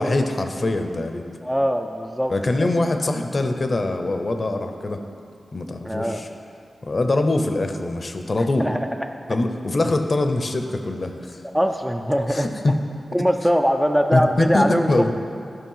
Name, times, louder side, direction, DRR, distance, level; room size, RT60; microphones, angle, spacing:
voice 1, 0.0-1.3 2.3-5.0 5.5-6.3 6.8-8.7 9.3-11.4 12.3-12.8 14.1-15.1, left 2 dB, 40° left, 6 dB, 0.6 m, -23 dB
voice 2, 1.4-2.7 5.9-6.2 8.4-9.1 11.5-12.5 13.1-15.1, equal, 5° right, 4 dB, 0.4 m, -22 dB
11.5 x 5.4 x 5.6 m, 2.5 s
wide cardioid pair, 120°, 0 cm